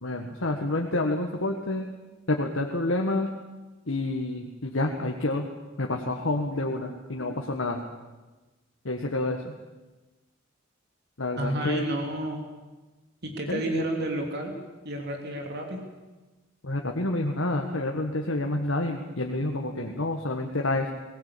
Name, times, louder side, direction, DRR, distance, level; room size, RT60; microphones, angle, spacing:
voice 1, 0.0-1.9 2.3-3.3 3.9-5.5 5.8-7.8 8.8-9.5 11.2-11.9 13.5-13.6 16.6-20.9, left 2 dB, 65° left, 2 dB, 1.7 m, -28 dB
voice 2, 11.4-12.5 13.2-14.5 14.8-15.8, right 1 dB, 50° right, 3 dB, 3.1 m, -30 dB
21.5 x 18.5 x 8.7 m, 1.2 s
head